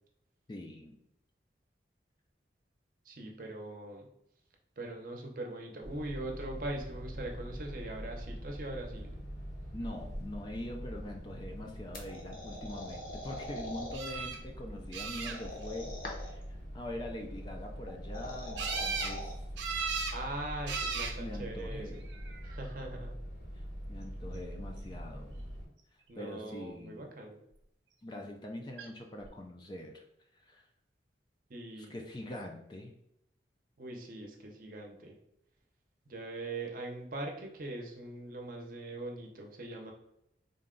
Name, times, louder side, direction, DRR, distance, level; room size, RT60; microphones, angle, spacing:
voice 1, 0.5-1.0 9.7-16.4 16.7-19.4 21.2-22.0 23.9-25.5 26.2-27.1 28.0-30.0 30.3-30.7 31.8-32.9, left 1 dB, 25° left, 3 dB, 0.3 m, -43 dB
voice 2, 3.1-4.1 4.8-9.1 20.1-22.0 22.4-23.1 26.1-27.4 31.5-31.9 33.8-35.2 36.1-39.9, right 2 dB, 50° right, 2 dB, 0.7 m, -41 dB
sound 1, 5.8-25.7, equal, 85° left, 1.4 m, -43 dB
sound 2, 11.9-13.9 15.3-16.4 17.9-19.3, left 1 dB, 50° left, 0.7 m, -43 dB
sound 3, 13.9-14.4 14.9-15.7 18.6-19.2 19.6-20.2 20.7-21.2 22.1-22.6 28.8-28.9 29.2-29.3, right 5 dB, 85° right, 0.5 m, -36 dB
3.9 x 2.2 x 3.7 m, 0.79 s
head